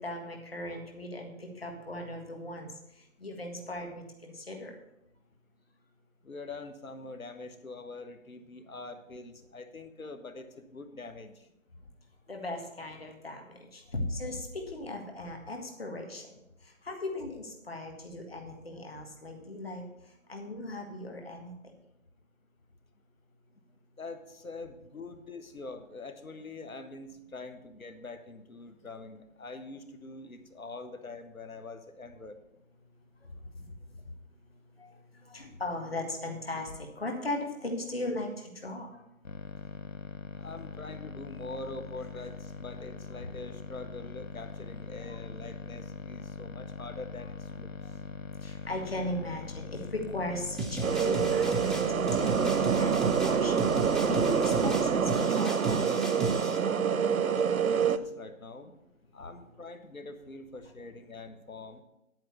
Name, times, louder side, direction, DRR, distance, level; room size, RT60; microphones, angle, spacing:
voice 1, 0.0-2.7 3.2-4.7 12.3-16.3 16.8-19.8 20.3-21.5 34.8-34.9 35.3-38.3 38.6-38.9 45.0-45.2 48.4-52.9 53.2-55.8, left 1 dB, 45° left, 2 dB, 1.7 m, -37 dB
voice 2, 6.2-11.5 24.0-32.3 40.4-47.7 57.2-58.7 59.1-61.8, left 3 dB, 90° left, 7 dB, 1.5 m, -44 dB
sound 1, 39.2-55.2, left 4 dB, 70° left, 0.9 m, -42 dB
sound 2, 50.6-56.6, right 2 dB, ahead, 0.5 m, -35 dB
sound 3, 50.8-58.0, right 6 dB, 85° right, 0.7 m, -26 dB
10.5 x 4.8 x 7.9 m, 0.87 s
figure-of-eight pair, 180°, 40 cm